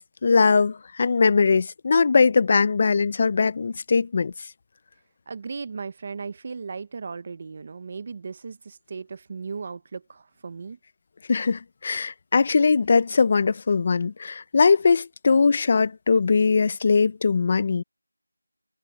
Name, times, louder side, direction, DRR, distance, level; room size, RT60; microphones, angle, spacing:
voice 1, 0.0-4.3 11.3-17.8, left 4 dB, 20° left, 0.6 m, -21 dB
voice 2, 5.3-10.8, right 5 dB, 25° right, 0.9 m, -36 dB
figure-of-eight pair, 175°, 0 cm